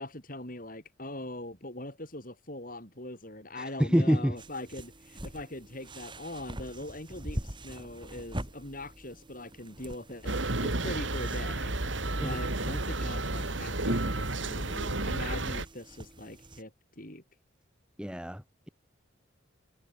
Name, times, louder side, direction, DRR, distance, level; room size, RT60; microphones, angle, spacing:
voice 1, 0.0-16.7 17.0-17.2, left 1 dB, 45° left, 7.0 m, -42 dB
voice 2, 3.5-4.4 12.2-12.4 18.0-18.7, equal, 5° right, 1.6 m, -27 dB
sound 1, 4.4-16.6, right 1 dB, 25° right, 5.2 m, -45 dB
sound 2, 10.3-15.7, right 2 dB, 65° right, 2.9 m, -31 dB
head